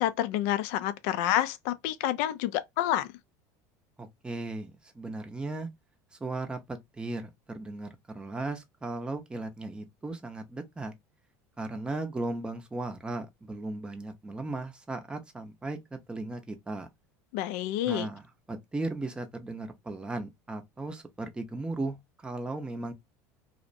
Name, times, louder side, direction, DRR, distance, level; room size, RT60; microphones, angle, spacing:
voice 1, 0.0-3.1 17.3-18.1, left 12 dB, 70° left, 0.4 m, -28 dB
voice 2, 4.0-5.7 6.2-10.9 11.6-15.8 16.1-16.9 17.8-22.0 22.2-22.9, right 2 dB, 10° right, 0.6 m, -36 dB
2.6 x 2.0 x 2.5 m
supercardioid pair, 120°, 8 cm